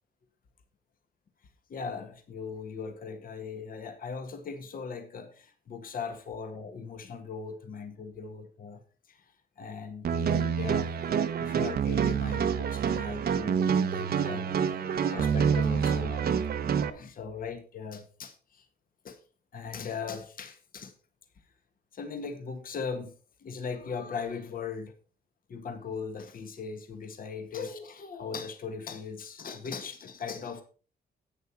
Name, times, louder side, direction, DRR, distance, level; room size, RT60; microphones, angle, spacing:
voice 1, 1.7-8.8 9.1-10.9 11.4-18.7 19.0-19.2 19.5-20.9 21.9-23.1 23.4-24.9 25.5-30.6, left 5 dB, 55° left, 6 dB, 1.7 m, -39 dB
sound 1, 10.0-16.9, right 7 dB, 60° right, 0.9 m, -27 dB
11.0 x 8.9 x 4.5 m, 0.37 s
wide cardioid pair, 160°, 18 cm